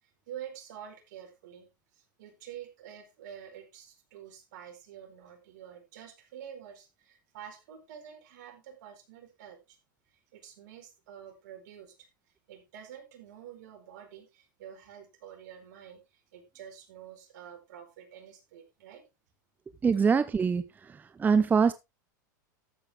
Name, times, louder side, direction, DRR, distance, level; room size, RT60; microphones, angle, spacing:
voice 1, 0.0-9.8 10.1-12.1 12.5-19.0, right 9 dB, 70° right, 4.4 m, -48 dB
voice 2, 19.8-20.6 21.2-21.7, right 5 dB, 15° right, 0.8 m, -23 dB
12.5 x 8.2 x 3.6 m
hypercardioid pair, 110°, 10 cm